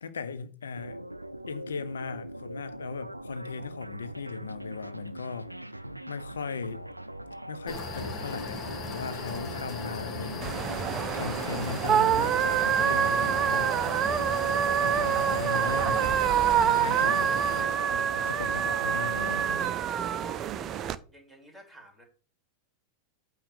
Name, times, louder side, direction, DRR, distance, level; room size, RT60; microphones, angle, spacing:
voice 1, 0.0-1.0 1.5-5.8 6.1-6.8 7.5-10.6 11.1-13.8 14.8-16.3 16.6-17.3 18.3-19.6, left 5 dB, 70° left, 0.7 m, -38 dB
sound 1, 0.7-19.7, right 1 dB, 85° right, 0.4 m, -41 dB
sound 2, 7.7-17.6, left 3 dB, 30° left, 2.1 m, -37 dB
sound 3, 10.4-21.0, right 9 dB, 30° right, 0.5 m, -26 dB
voice 2, 20.8-22.0, equal, ahead, 2.9 m, -53 dB
8.7 x 3.2 x 6.4 m
figure-of-eight pair, 90°, 0 cm